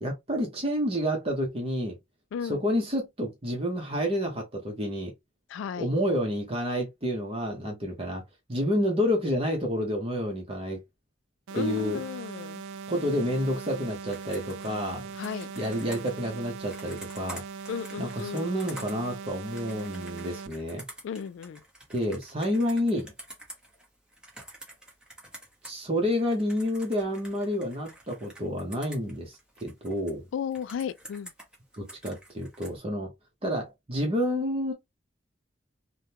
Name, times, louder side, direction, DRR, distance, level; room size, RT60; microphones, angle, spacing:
voice 1, 0.0-2.0 2.4-5.1 5.8-8.2 8.5-10.8 11.5-12.0 12.9-15.1 15.6-17.4 18.0-20.8 21.9-23.1 25.6-30.3 31.7-33.1 33.4-34.7, equal, 30° right, 0.8 m, -29 dB
voice 2, 2.3-2.6 5.5-5.9 11.5-12.6 15.2-15.5 17.7-18.5 21.0-21.6 30.3-31.3, left 7 dB, 85° left, 0.3 m, -34 dB
sound 1, 11.5-20.5, right 5 dB, 85° right, 0.3 m, -40 dB
Computer keyboard, 14.1-25.8 26.1-30.1 30.5-32.7, right 1 dB, 5° right, 1.0 m, -48 dB
3.5 x 2.2 x 2.8 m
head